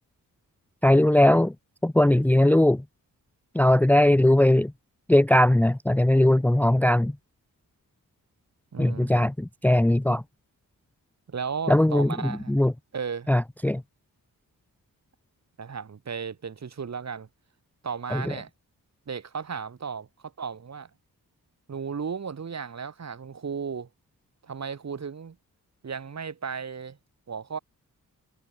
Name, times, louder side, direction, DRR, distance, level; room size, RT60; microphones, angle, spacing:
voice 1, 0.8-1.5 1.8-2.8 3.5-4.7 5.1-7.1 8.8-10.2 11.7-12.7 13.3-13.8 18.1-18.2, left 1 dB, 5° left, 0.6 m, -20 dB
voice 2, 8.7-9.1 11.3-12.6 12.9-13.3 15.6-17.3 17.8-18.5 19.1-20.9 21.7-23.9 24.4-25.4 25.8-27.0 27.3-27.6, right 6 dB, 50° right, 4.2 m, -35 dB
wide cardioid pair, 170°, 35 cm